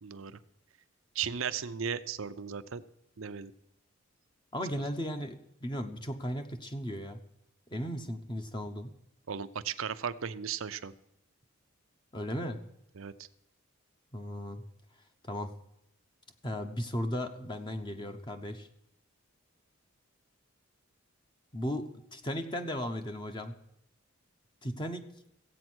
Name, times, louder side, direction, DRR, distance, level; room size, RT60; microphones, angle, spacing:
voice 1, 0.0-0.4 1.1-2.8 3.2-3.5 9.3-10.9 13.0-13.3, right 7 dB, 70° right, 12 dB, 0.6 m, -36 dB
voice 2, 4.5-7.2 7.7-8.9 12.1-12.6 14.1-14.6 15.2-15.5 16.4-18.7 21.5-23.6 24.6-25.1, equal, 20° left, 6 dB, 0.9 m, -36 dB
15.5 x 8.4 x 6.2 m, 0.80 s
head